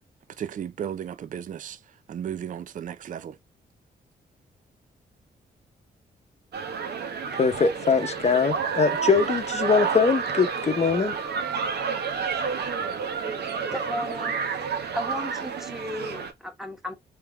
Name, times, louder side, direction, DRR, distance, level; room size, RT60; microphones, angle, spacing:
voice 1, 0.4-1.8 2.1-3.4, right 9 dB, 50° right, 0.4 m, -34 dB
sound 1, 6.5-16.3, right 6 dB, 70° right, 0.9 m, -30 dB
voice 2, 7.3-11.1, left 5 dB, 40° left, 0.8 m, -22 dB
voice 3, 12.8-14.4 14.9-16.9, equal, ahead, 1.3 m, -36 dB
3.5 x 2.9 x 3.4 m
cardioid pair, 75°, 17 cm